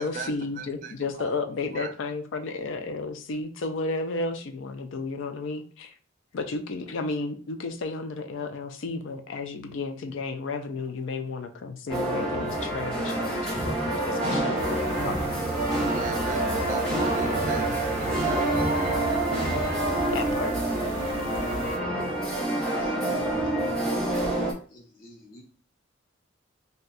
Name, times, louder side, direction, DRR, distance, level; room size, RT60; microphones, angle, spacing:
voice 1, 0.0-5.9 6.3-15.2 20.1-20.6, left 3 dB, 70° left, 0.4 m, -33 dB
voice 2, 0.6-1.3 1.7-1.9 15.8-19.1, right 4 dB, 40° right, 0.3 m, -38 dB
sound 1, 11.9-24.5, right 1 dB, 5° left, 0.8 m, -27 dB
sound 2, 14.6-21.8, right 2 dB, 90° right, 0.6 m, -37 dB
voice 3, 22.6-24.1 24.3-25.4, left 1 dB, 45° left, 0.8 m, -50 dB
2.6 x 2.2 x 3.9 m
head